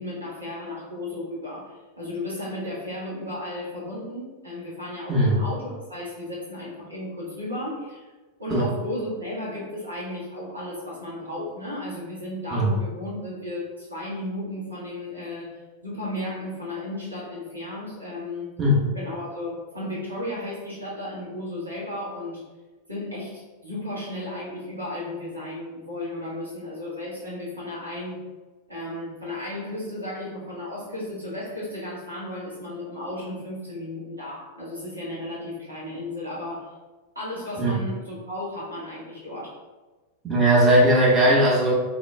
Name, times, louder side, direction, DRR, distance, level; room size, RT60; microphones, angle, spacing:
voice 1, 0.0-8.0 8.4-15.5 15.8-18.6 18.9-22.4 22.9-28.2 28.7-36.7 37.1-39.6, left 1 dB, 80° right, -7 dB, 1.4 m, -34 dB
voice 2, 40.3-41.8, right 1 dB, 20° right, -6 dB, 1.1 m, -18 dB
4.2 x 3.3 x 2.3 m, 1.2 s
figure-of-eight pair, 90°, 0 cm